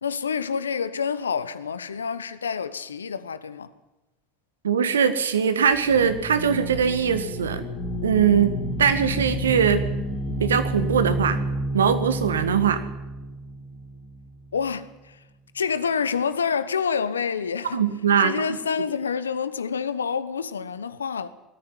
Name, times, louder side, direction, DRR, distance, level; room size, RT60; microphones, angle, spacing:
voice 1, 0.0-3.7 14.5-15.2 15.5-17.8 18.2-21.3, left 6 dB, 85° left, 1.0 m, -28 dB
voice 2, 4.6-7.6 8.0-8.5 8.8-9.8 10.4-11.4 11.7-12.8 17.7-18.3, right 7 dB, 85° right, 1.6 m, -21 dB
sound 1, 5.7-14.4, right 1 dB, 50° left, 4.5 m, -30 dB
19.5 x 14.0 x 9.8 m
hypercardioid pair, 70°, 0 cm